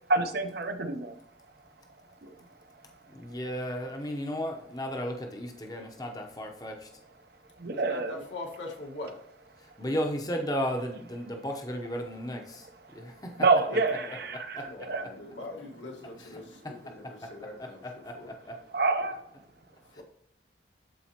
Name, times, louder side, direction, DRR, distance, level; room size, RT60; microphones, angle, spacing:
voice 1, 0.1-1.2 2.2-2.3 7.6-8.2 12.6-13.1 13.4-15.1 18.7-19.2, right 3 dB, 55° right, 8 dB, 0.6 m, -28 dB
voice 2, 3.1-6.9 9.8-12.7 12.9-13.3 14.5-14.7 16.6-16.7 18.0-18.6, equal, 20° left, 3 dB, 0.8 m, -34 dB
voice 3, 7.7-9.2 13.5-14.3 14.6-18.3 20.0-20.1, left 2 dB, 80° left, 0 dB, 1.5 m, -43 dB
11.5 x 4.1 x 2.9 m, 0.74 s
head